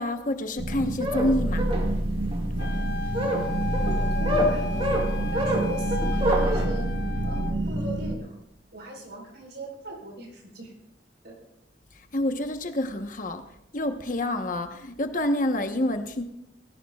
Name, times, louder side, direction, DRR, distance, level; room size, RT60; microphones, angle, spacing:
voice 1, 0.0-1.7 12.1-13.4 13.7-16.2, left 1 dB, 45° left, 7 dB, 1.1 m, -27 dB
sound 1, 0.6-8.1, right 1 dB, 85° right, 1.4 m, -28 dB
Squeaky Wiping Sounds, 0.7-6.7, equal, 30° right, 2.1 m, -27 dB
Wind instrument woodwind instrument, 2.6-7.6, left 3 dB, 65° left, 0.8 m, -36 dB
voice 2, 3.7-6.9 7.2-8.4 8.7-10.7 11.2-11.4, right 1 dB, 70° right, 0 dB, 4.6 m, -39 dB
19.0 x 17.5 x 2.4 m, 0.81 s
head